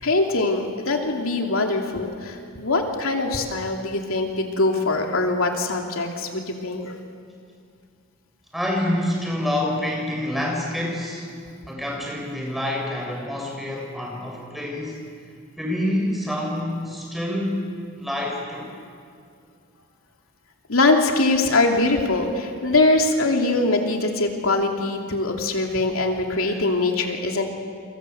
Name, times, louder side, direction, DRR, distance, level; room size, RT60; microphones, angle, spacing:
voice 1, 0.0-6.9 20.7-27.5, left 2 dB, 85° left, 2 dB, 3.0 m, -22 dB
voice 2, 8.5-11.3 11.7-15.0 15.6-17.6 18.0-18.7 26.4-26.6, left 1 dB, ahead, -1 dB, 6.4 m, -27 dB
29.0 x 25.0 x 8.1 m, 2.2 s
head